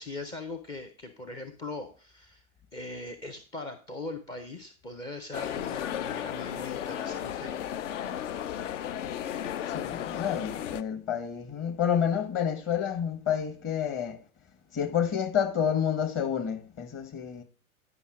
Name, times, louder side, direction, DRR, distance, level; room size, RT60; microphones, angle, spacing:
voice 1, 0.0-2.4 2.7-7.6, left 2 dB, 10° left, 0.4 m, -40 dB
sound 1, 5.3-10.8, left 10 dB, 55° left, 0.6 m, -34 dB
voice 2, 9.7-14.2 14.7-17.4, left 8 dB, 25° left, 1.5 m, -29 dB
9.9 x 5.6 x 4.9 m
figure-of-eight pair, 95°, 43 cm